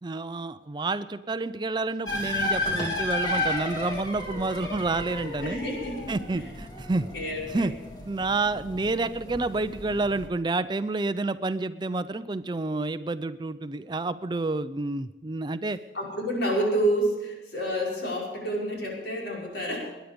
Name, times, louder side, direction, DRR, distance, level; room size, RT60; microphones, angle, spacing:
voice 1, 0.0-5.6 6.1-7.1 7.5-7.7 8.0-15.8, right 3 dB, 25° right, 13 dB, 0.4 m, -29 dB
sound 1, 2.1-10.3, left 2 dB, 25° left, 2.9 m, -33 dB
voice 2, 5.4-6.5 7.1-7.7 15.9-19.8, right 1 dB, 75° left, -3 dB, 5.6 m, -29 dB
20.5 x 10.5 x 5.2 m, 1.1 s
head